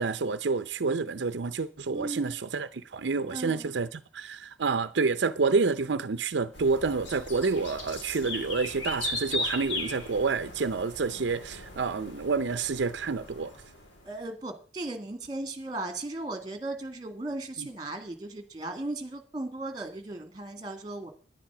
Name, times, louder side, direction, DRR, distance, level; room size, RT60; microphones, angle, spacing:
voice 1, 0.0-13.5, right 4 dB, 75° right, 0.6 m, -28 dB
voice 2, 1.9-2.4 3.3-3.7 14.0-21.1, right 2 dB, 20° right, 1.9 m, -36 dB
sound 1, 6.5-14.2, left 2 dB, 85° left, 3.5 m, -38 dB
10.5 x 10.5 x 6.0 m
head